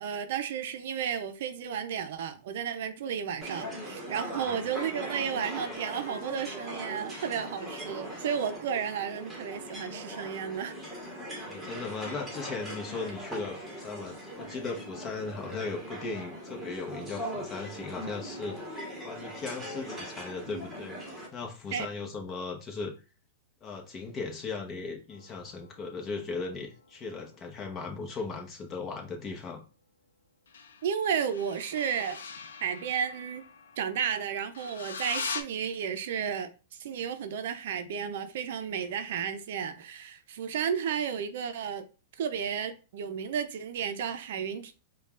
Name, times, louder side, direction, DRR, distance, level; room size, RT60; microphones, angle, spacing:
voice 1, 0.0-11.0 21.7-21.9 30.8-32.2 32.6-33.5 33.8-36.5 36.8-41.8 42.2-44.7, right 7 dB, 65° right, 0.5 m, -33 dB
sound 1, 3.4-21.3, equal, 5° right, 1.3 m, -40 dB
voice 2, 11.5-18.6 19.0-22.9 23.6-29.6, left 4 dB, 25° left, 1.0 m, -37 dB
sound 2, 25.1-28.2 30.5-35.4, left 5 dB, 85° left, 0.6 m, -42 dB
5.2 x 2.3 x 2.4 m
hypercardioid pair, 130°, 0 cm